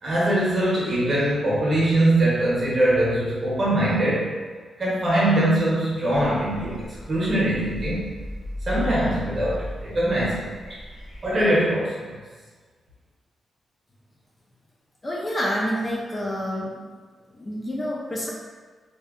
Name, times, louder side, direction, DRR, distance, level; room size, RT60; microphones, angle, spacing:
voice 1, 0.0-4.3 4.8-8.1 8.7-10.5 11.2-12.1, right 1 dB, 40° right, -7 dB, 0.8 m, -22 dB
sound 1, 6.1-11.5, left 1 dB, 40° left, 0.8 m, -36 dB
voice 2, 15.0-16.9 17.3-18.3, equal, 25° left, -4 dB, 0.3 m, -28 dB
2.7 x 2.1 x 2.3 m, 1.5 s
wide cardioid pair, 150°, 0 cm